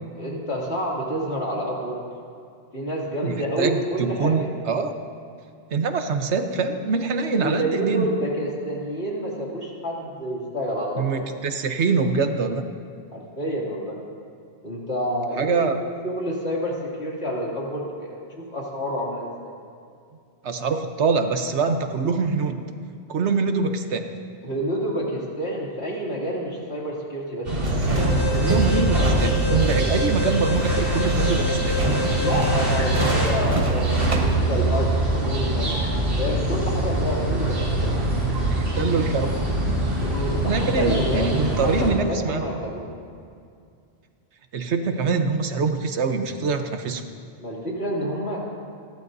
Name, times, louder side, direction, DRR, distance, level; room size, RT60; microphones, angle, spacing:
voice 1, 0.1-2.0 2.7-4.5 7.3-11.2 13.1-14.0 14.6-19.5 24.4-27.5 32.1-35.8 36.2-38.0 40.0-41.3 41.8-42.9 47.4-48.4, equal, 70° left, -4 dB, 3.0 m, -28 dB
voice 2, 3.2-4.9 5.7-8.1 11.0-12.6 15.4-15.8 20.4-22.6 23.1-24.1 28.3-31.8 38.5-39.3 40.5-42.4 44.5-47.0, right 4 dB, 90° right, 7 dB, 1.2 m, -24 dB
sound 1, 27.4-41.9, right 1 dB, 60° right, 3.3 m, -23 dB
sound 2, 27.6-34.4, right 2 dB, 30° right, 1.0 m, -29 dB
Alarm, 28.0-33.2, right 2 dB, 30° left, 3.5 m, -29 dB
29.0 x 11.5 x 2.7 m, 2.4 s
omnidirectional pair, 1.1 m